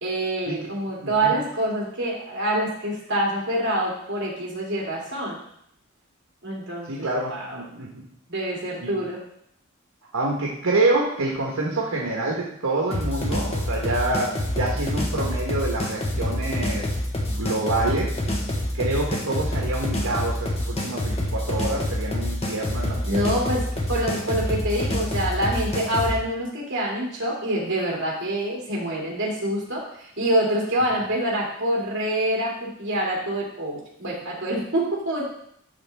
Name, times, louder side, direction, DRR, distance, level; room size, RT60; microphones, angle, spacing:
voice 1, 0.0-5.4 6.4-7.6 8.3-9.2 23.1-35.2, right 1 dB, 60° right, -4 dB, 2.5 m, -26 dB
voice 2, 1.0-1.3 6.9-8.0 8.8-8.9 10.1-16.9 17.3-18.2 18.7-23.3, right 2 dB, 80° right, -2 dB, 1.3 m, -27 dB
sound 1, 12.9-26.2, left 1 dB, 30° left, 1.2 m, -27 dB
12.0 x 4.0 x 3.5 m, 0.71 s
head